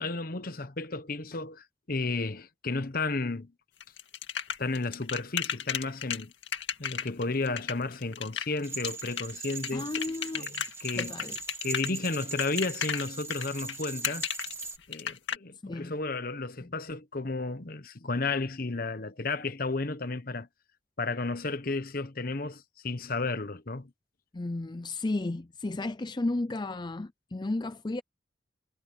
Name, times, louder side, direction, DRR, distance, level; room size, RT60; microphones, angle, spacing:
voice 1, 0.0-3.5 4.6-6.3 6.8-9.9 10.3-11.1 11.6-14.3 14.9-20.5 21.0-23.9, left 3 dB, 50° left, 1.2 m, -33 dB
sound 1, 3.8-15.4, left 8 dB, 85° left, 2.0 m, -34 dB
sound 2, 8.6-14.8, right 4 dB, 15° right, 1.7 m, -40 dB
voice 2, 9.7-10.5 11.0-11.4 15.6-15.9 16.6-16.7 24.3-28.0, left 2 dB, 25° left, 0.5 m, -33 dB
head